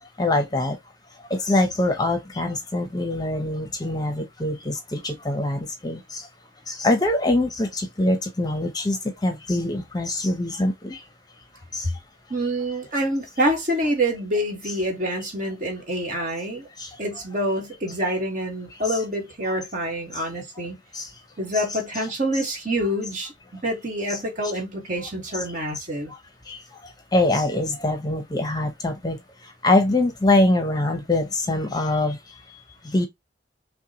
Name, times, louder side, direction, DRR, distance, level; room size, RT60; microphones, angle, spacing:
voice 1, 0.2-0.8 1.2-6.3 6.7-11.0 11.7-11.9 16.8-17.0 20.9-21.1 26.1-26.2 26.5-33.1, left 2 dB, 20° left, 0.7 m, -24 dB
voice 2, 12.3-16.7 17.0-20.8 21.4-26.1, equal, 45° right, 1.6 m, -26 dB
5.8 x 2.2 x 2.9 m
head